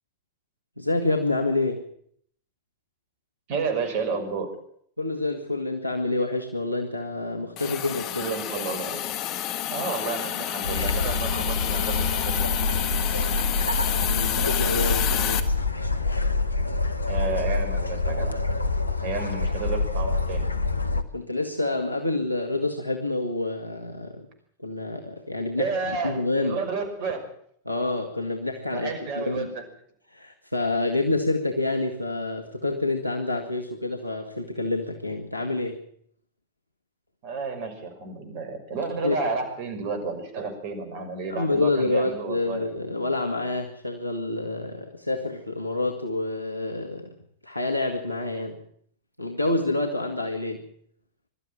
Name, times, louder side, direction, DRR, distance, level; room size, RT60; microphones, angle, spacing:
voice 1, 0.8-1.9 5.0-8.3 14.0-15.4 18.9-19.0 21.1-24.3 24.6-26.6 27.7-29.5 30.1-35.8 39.0-39.2 41.3-47.2 47.4-48.6 49.2-50.7, left 2 dB, 90° right, 5 dB, 2.0 m, -28 dB
voice 2, 3.5-4.5 8.2-9.2 9.7-12.4 17.1-18.3 19.0-20.5 25.6-27.3 28.7-29.7 37.2-42.8, right 4 dB, 45° right, 7 dB, 5.8 m, -31 dB
Hiss, 7.6-15.4, left 11 dB, 40° left, 1.7 m, -29 dB
sound 1, 10.6-21.0, left 3 dB, 80° left, 1.2 m, -26 dB
23.0 x 13.0 x 9.0 m, 0.65 s
figure-of-eight pair, 90°, 0 cm